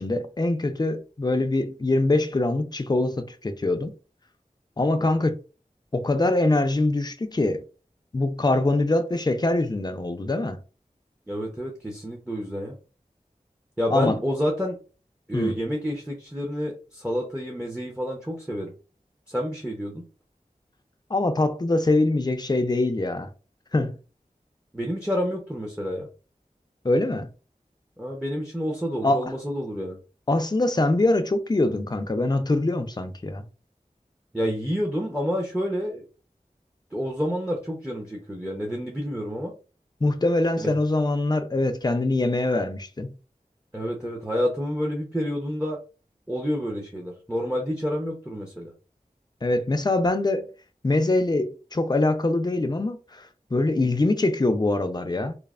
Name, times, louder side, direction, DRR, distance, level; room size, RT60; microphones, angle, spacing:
voice 1, 0.0-3.9 4.8-5.4 5.9-7.6 8.1-10.6 13.9-14.2 15.3-15.6 21.1-23.3 23.7-23.9 26.8-27.3 29.0-29.3 30.3-33.4 40.0-43.1 49.4-50.5 50.8-55.4, left 2 dB, 30° left, 0.4 m, -23 dB
voice 2, 5.0-5.3 11.3-12.8 13.8-14.8 15.3-18.7 19.3-20.0 24.7-26.1 28.0-30.0 34.3-36.0 36.9-39.5 40.6-40.7 43.7-45.8 46.3-48.7, equal, 5° right, 0.6 m, -29 dB
3.1 x 2.0 x 2.4 m
wide cardioid pair, 40°, 14 cm